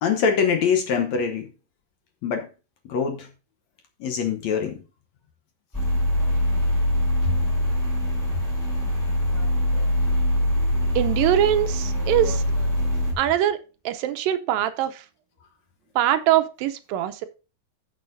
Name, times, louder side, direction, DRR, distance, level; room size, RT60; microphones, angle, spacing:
voice 1, 0.0-1.5 2.2-2.5 2.9-3.3 4.0-4.8, left 6 dB, 65° left, 1.9 m, -23 dB
sound 1, 5.7-13.1, left 1 dB, 5° left, 3.3 m, -23 dB
voice 2, 11.0-12.4 13.2-13.6 13.9-15.0 16.0-17.3, right 12 dB, 80° right, 2.4 m, -22 dB
14.0 x 6.4 x 2.6 m
omnidirectional pair, 4.1 m